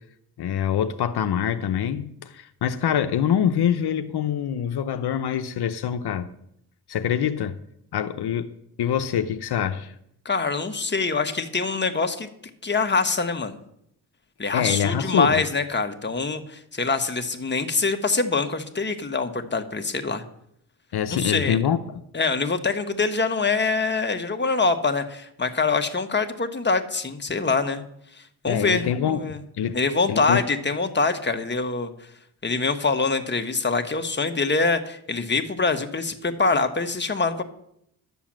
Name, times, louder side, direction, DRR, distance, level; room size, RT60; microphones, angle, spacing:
voice 1, 0.4-6.3 6.9-7.6 7.9-8.5 8.8-9.9 14.5-15.4 20.9-22.0 28.5-29.8 30.1-30.4, left 9 dB, 75° left, 0.8 m, -25 dB
voice 2, 10.2-12.3 12.6-13.6 14.4-20.2 21.1-21.6 22.1-27.8 28.4-29.4 29.7-31.9 32.4-37.4, left 4 dB, 25° left, 1.4 m, -24 dB
11.5 x 7.1 x 7.5 m
cardioid pair, 70°, 40 cm